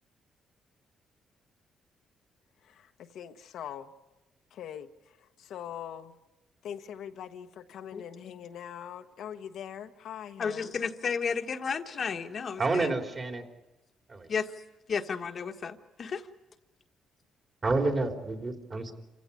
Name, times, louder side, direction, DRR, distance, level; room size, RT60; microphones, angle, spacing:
voice 1, 2.6-3.9 4.5-6.1 6.6-10.8, left 9 dB, 75° left, 6 dB, 1.2 m, -42 dB
voice 2, 10.4-12.9 14.3-14.5 14.9-16.2, left 6 dB, 50° left, 5 dB, 1.4 m, -32 dB
voice 3, 12.6-13.4 14.1-14.3 17.6-18.9, right 3 dB, 35° right, 4 dB, 3.5 m, -29 dB
28.0 x 16.0 x 9.9 m, 1.0 s
cardioid pair, 90°, 0 cm